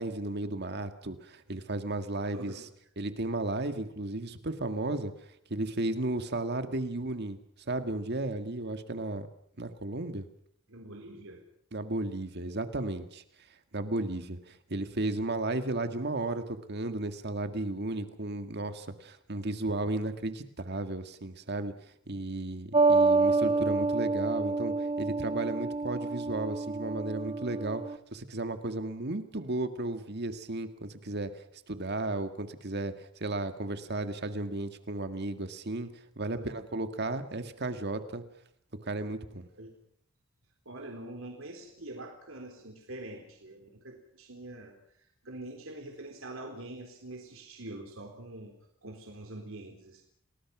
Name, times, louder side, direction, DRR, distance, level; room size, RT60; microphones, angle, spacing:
voice 1, 0.0-2.6 3.0-5.1 5.5-7.4 7.7-9.3 9.6-10.3 11.7-13.2 13.7-21.7 22.1-27.8 28.1-35.9 36.2-38.2 38.8-39.5, right 2 dB, 55° right, 8 dB, 1.8 m, -34 dB
voice 2, 2.3-2.7 10.7-11.4 36.3-36.5 39.6-39.7 40.7-48.5 48.8-50.0, right 1 dB, 75° right, 2 dB, 3.9 m, -44 dB
sound 1, 22.7-27.9, right 3 dB, 30° right, 1.0 m, -27 dB
30.0 x 20.0 x 6.1 m, 0.66 s
head